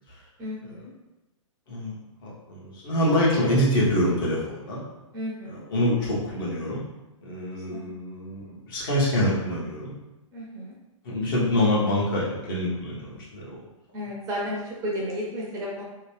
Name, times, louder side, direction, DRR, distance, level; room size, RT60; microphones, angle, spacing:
voice 1, 0.4-0.9 5.1-5.6 7.7-7.9 10.3-10.7 13.9-15.8, equal, 20° right, -4 dB, 0.6 m, -33 dB
voice 2, 2.2-4.8 5.4-6.8 7.2-9.9 11.0-13.6, left 1 dB, 40° left, -6 dB, 1.1 m, -26 dB
2.9 x 2.2 x 3.1 m, 1.0 s
figure-of-eight pair, 115°, 17 cm